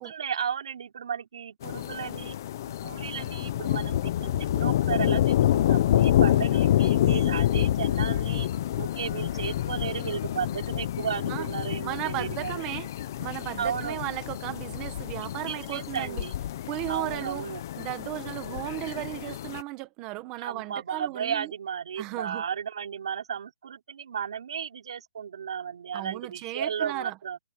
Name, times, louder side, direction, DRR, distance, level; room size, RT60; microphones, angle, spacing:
voice 1, 0.0-2.4 2.8-8.5 8.8-12.6 13.6-14.0 15.4-16.3 16.9-17.6 20.4-27.4, right 8 dB, 55° right, 4.6 m, -34 dB
sound 1, 1.6-19.6, left 12 dB, 30° left, 0.8 m, -27 dB
voice 2, 11.8-12.9 13.2-16.2 16.7-17.5 17.8-21.5 22.0-22.4 25.9-27.1, right 18 dB, 15° right, 1.4 m, -35 dB
hypercardioid pair, 180°, 4 cm